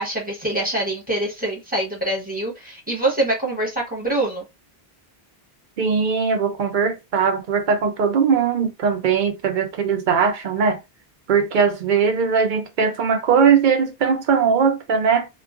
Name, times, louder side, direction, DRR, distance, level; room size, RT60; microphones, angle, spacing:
voice 1, 0.0-4.4, right 1 dB, 10° right, 0.9 m, -24 dB
voice 2, 5.8-10.8 11.3-15.3, right 6 dB, 60° right, 0.6 m, -20 dB
2.3 x 2.3 x 2.3 m
omnidirectional pair, 1.0 m